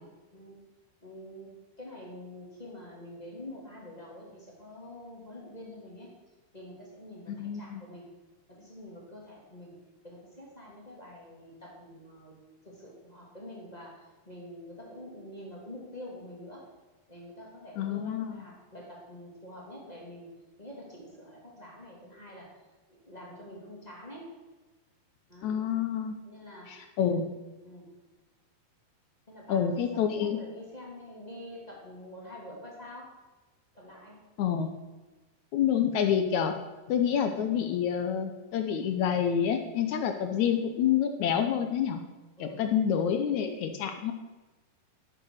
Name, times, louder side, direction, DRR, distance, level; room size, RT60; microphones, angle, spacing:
voice 1, 1.0-6.1 6.5-8.1 8.5-9.8 10.0-16.7 17.1-20.3 20.6-22.5 22.9-24.3 25.3-25.6 26.2-27.1 27.6-27.9 29.3-29.7 30.1-33.1 33.7-34.2 42.4-42.7, left 1 dB, 10° left, -3 dB, 2.6 m, -46 dB
voice 2, 7.3-7.8 17.8-18.3 25.4-26.2 26.7-27.2 29.5-30.4 34.4-34.7 35.5-36.5 36.9-42.0 42.4-44.1, left 8 dB, 75° left, 6 dB, 1.8 m, -28 dB
11.5 x 8.6 x 6.6 m, 1.2 s
omnidirectional pair, 4.3 m